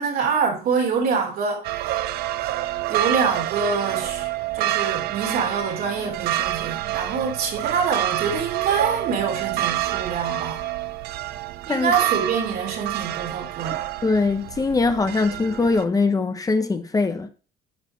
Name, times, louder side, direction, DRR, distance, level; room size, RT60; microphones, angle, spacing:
voice 1, 0.0-1.9 2.9-4.3 4.5-10.6 11.7-13.9, right 5 dB, 70° right, 3.1 m, -25 dB
sound 1, 1.6-15.8, right 14 dB, 85° right, 0.6 m, -28 dB
voice 2, 14.0-17.3, left 3 dB, 20° left, 0.9 m, -22 dB
9.5 x 5.0 x 4.5 m
cardioid pair, 105°, 16 cm